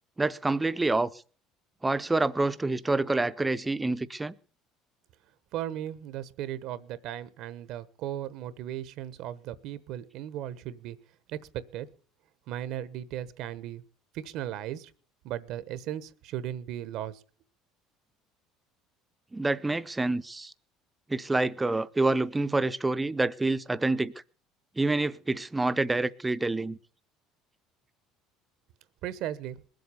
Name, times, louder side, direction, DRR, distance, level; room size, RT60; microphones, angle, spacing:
voice 1, 0.2-1.1 1.8-4.3 19.3-20.5 21.1-24.1 24.8-26.8, right 2 dB, 10° right, 0.7 m, -27 dB
voice 2, 5.5-11.0 11.3-11.4 11.7-11.9 12.5-13.8 14.1-14.9 15.2-17.2 29.0-29.6, right 11 dB, 65° right, 1.0 m, -36 dB
20.5 x 7.9 x 7.0 m
supercardioid pair, 110°, 0 cm